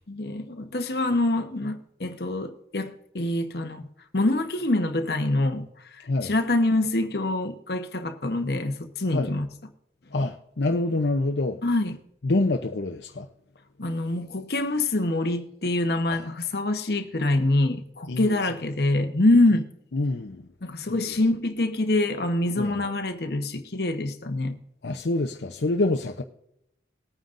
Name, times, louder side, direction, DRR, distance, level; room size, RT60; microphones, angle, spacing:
voice 1, 0.0-3.9 4.1-5.7 6.2-9.5 11.6-12.0 13.8-19.7 20.6-24.6, left 2 dB, 65° left, 1.0 m, -25 dB
voice 2, 10.1-11.6 12.2-13.3 16.1-16.2 18.1-18.4 19.9-20.5 20.9-21.1 22.6-22.8 24.8-26.2, left 2 dB, 80° left, 0.7 m, -26 dB
19.5 x 9.2 x 2.6 m
head